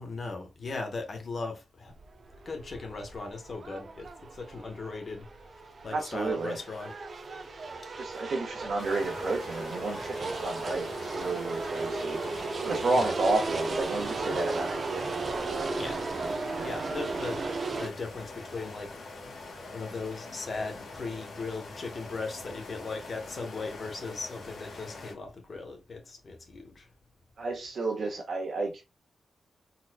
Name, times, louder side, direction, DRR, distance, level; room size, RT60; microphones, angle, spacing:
voice 1, 0.0-1.9 2.4-5.3 5.6-7.0 12.9-13.1 15.7-16.0 16.6-17.4 17.7-19.0 19.7-26.9, left 3 dB, 40° left, 0.9 m, -38 dB
sound 1, 1.9-17.9, right 3 dB, 45° right, 0.5 m, -35 dB
voice 2, 5.9-6.6 8.0-12.2 12.6-15.8 16.5-16.7 27.4-28.8, right 3 dB, 60° right, 1.2 m, -31 dB
sound 2, 8.8-25.1, left 3 dB, 70° left, 1.7 m, -44 dB
4.0 x 3.0 x 2.2 m
wide cardioid pair, 140°, 0 cm